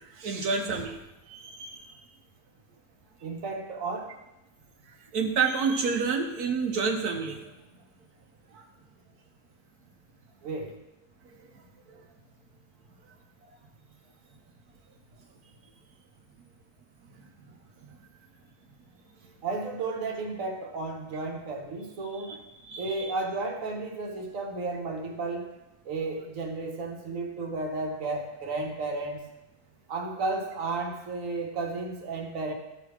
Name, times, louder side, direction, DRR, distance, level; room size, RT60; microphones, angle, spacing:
voice 1, 0.1-1.0 1.3-1.8 5.1-7.5 8.5-8.6 22.2-22.4 22.6-23.1, right 5 dB, 75° right, 2 dB, 1.2 m, -29 dB
voice 2, 3.2-4.2 10.4-10.8 19.4-22.4 22.8-25.5 25.8-29.3 29.9-32.5, right 3 dB, 60° right, 2 dB, 1.4 m, -33 dB
13.5 x 4.9 x 3.2 m, 0.97 s
omnidirectional pair, 1.7 m